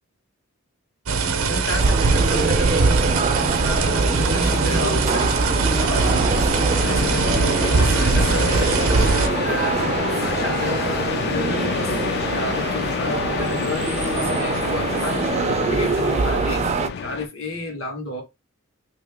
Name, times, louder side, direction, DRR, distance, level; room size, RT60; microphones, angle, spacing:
sound 1, 1.1-9.3, right 4 dB, 85° right, 0.6 m, -21 dB
voice 1, 1.5-3.3 3.6-5.5 5.7-6.3 6.8-8.9 9.4-18.2, left 2 dB, 75° left, 1.4 m, -32 dB
sound 2, 1.8-16.9, right 4 dB, 30° right, 0.3 m, -25 dB
sound 3, 2.9-17.3, left 7 dB, 50° left, 0.3 m, -29 dB
2.8 x 2.8 x 3.3 m
head